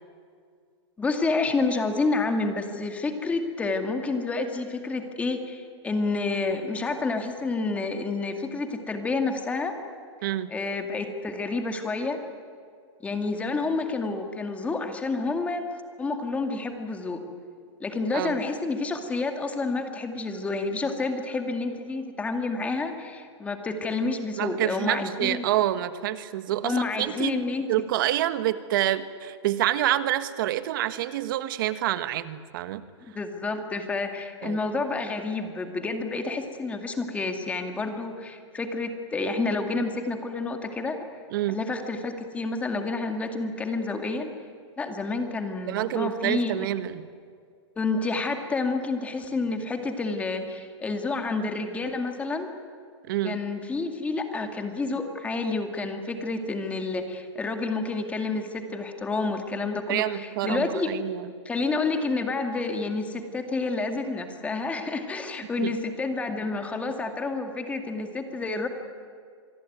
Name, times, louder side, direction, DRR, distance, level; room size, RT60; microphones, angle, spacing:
voice 1, 1.0-9.7 10.5-12.2 13.0-15.6 16.0-17.2 17.8-25.5 26.6-27.7 33.2-41.0 41.5-44.3 44.8-46.7 47.8-52.5 53.2-60.9 61.5-68.7, left 3 dB, 10° left, 5 dB, 2.2 m, -29 dB
voice 2, 10.2-10.5 18.1-18.4 24.4-27.4 27.7-32.8 34.4-34.6 41.3-41.6 45.7-47.0 53.1-53.4 59.9-61.3 65.6-65.7, right 13 dB, 45° right, 12 dB, 1.5 m, -27 dB
26.5 x 21.5 x 9.4 m, 2.2 s
hypercardioid pair, 160°, 15 cm